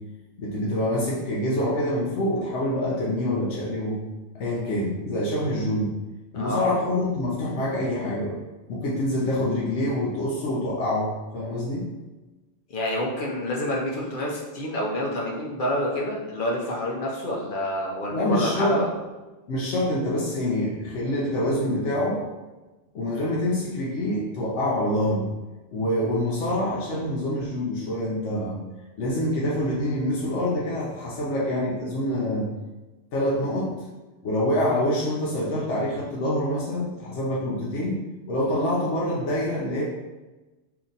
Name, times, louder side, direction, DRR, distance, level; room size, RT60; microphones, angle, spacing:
voice 1, 0.4-4.0 4.3-5.9 6.3-8.4 8.7-11.9 18.1-18.8 19.5-22.2 22.9-25.3 25.7-28.6 29.0-32.5 33.1-33.7 34.2-38.0 38.3-39.8, left 1 dB, 80° left, -5 dB, 1.0 m, -26 dB
voice 2, 6.3-6.7 12.7-18.9, left 1 dB, 55° left, -2 dB, 0.7 m, -28 dB
2.8 x 2.5 x 3.9 m, 1.1 s
omnidirectional pair, 1.2 m